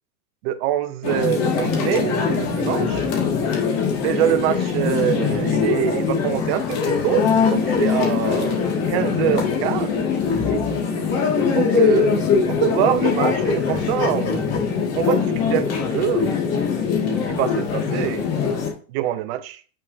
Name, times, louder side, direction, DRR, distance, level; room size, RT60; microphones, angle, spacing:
voice 1, 0.4-3.1 4.0-7.2 7.5-9.9 10.5-10.6 11.5-14.6 14.9-16.3 17.3-18.2 18.9-19.6, right 12 dB, 40° right, 11 dB, 0.7 m, -24 dB
sound 1, 1.0-18.7, left 6 dB, 35° left, 2.0 m, -22 dB
7.8 x 6.4 x 2.7 m, 0.39 s
supercardioid pair, 145°, 46 cm